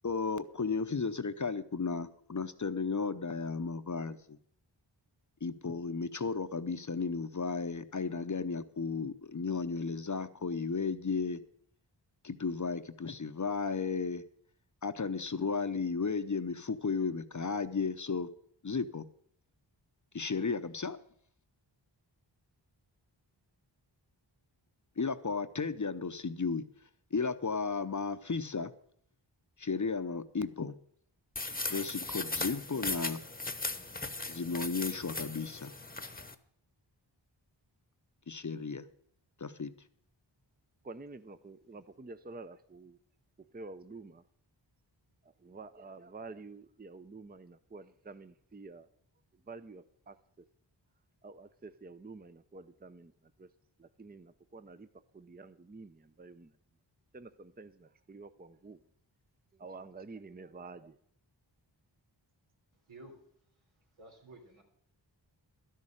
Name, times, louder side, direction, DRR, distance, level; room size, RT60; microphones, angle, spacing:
voice 1, 0.0-4.4 5.4-11.4 12.2-14.2 14.8-18.3 18.6-19.0 20.1-21.0 25.0-26.7 27.1-28.7 29.6-30.7 31.7-33.2 34.3-35.7 38.3-38.8 39.4-39.7, left 4 dB, 40° left, 0.8 m, -34 dB
sound 1, 31.4-36.4, left 2 dB, 20° left, 1.0 m, -38 dB
voice 2, 40.8-43.0 43.5-44.2 45.4-48.9 49.5-50.2 51.2-53.1 53.4-53.5 53.8-54.9 55.1-56.5 57.1-58.8 59.6-61.0, right 3 dB, 20° right, 0.6 m, -49 dB
voice 3, 64.0-64.6, right 1 dB, 85° right, 3.6 m, -52 dB
12.5 x 6.6 x 8.7 m
cardioid pair, 45°, 47 cm